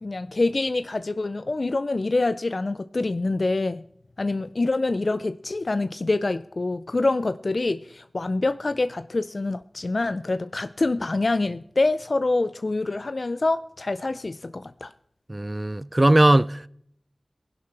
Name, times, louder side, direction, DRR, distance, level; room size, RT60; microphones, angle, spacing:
voice 1, 0.0-3.8 4.2-14.9, left 2 dB, 60° left, 0.4 m, -26 dB
voice 2, 15.3-16.7, right 1 dB, 30° right, 0.4 m, -19 dB
19.0 x 11.0 x 3.3 m
wide cardioid pair, 45°, 0 cm